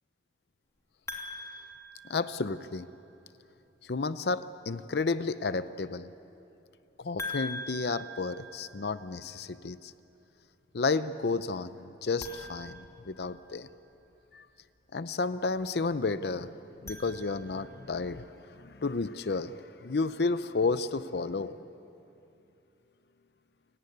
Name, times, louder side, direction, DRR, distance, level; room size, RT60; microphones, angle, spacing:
sound 1, 1.1-2.8 7.2-9.2 12.1-13.7 16.6-17.8, left 2 dB, 15° left, 2.8 m, -43 dB
voice 1, 2.1-2.9 3.8-6.1 7.0-9.9 10.7-13.7 14.3-14.4 14.9-16.5 16.8-18.3 18.5-21.6, left 3 dB, 65° left, 13 dB, 0.6 m, -32 dB
29.5 x 17.5 x 9.5 m, 2.8 s
head